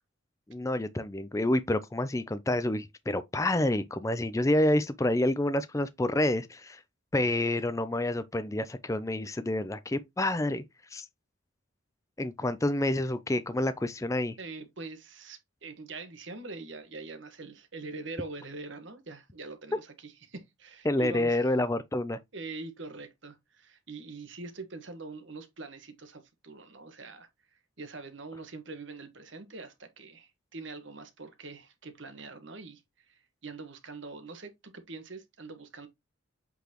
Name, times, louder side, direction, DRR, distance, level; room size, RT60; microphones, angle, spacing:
voice 1, 0.5-6.8 7.1-10.6 10.9-11.1 12.2-14.4 20.8-22.2, left 1 dB, 15° left, 0.4 m, -28 dB
voice 2, 14.4-21.5 22.3-27.3 27.8-35.9, right 3 dB, 65° right, 1.4 m, -43 dB
8.2 x 4.1 x 3.0 m
head